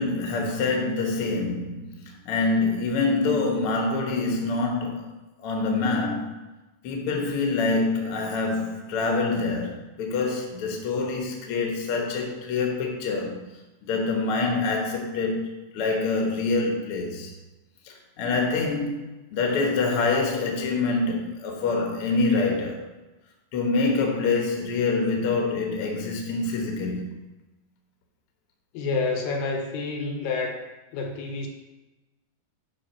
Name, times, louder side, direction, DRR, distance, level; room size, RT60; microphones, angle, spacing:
voice 1, 0.0-5.1 5.4-6.4 6.8-13.4 13.9-17.3 17.9-19.0 19.3-22.8 23.5-27.1, left 3 dB, 60° left, 1 dB, 1.6 m, -26 dB
voice 2, 28.7-30.6 30.9-31.5, left 4 dB, 75° left, 3 dB, 2.3 m, -28 dB
9.2 x 3.8 x 5.5 m, 1.1 s
omnidirectional pair, 4.1 m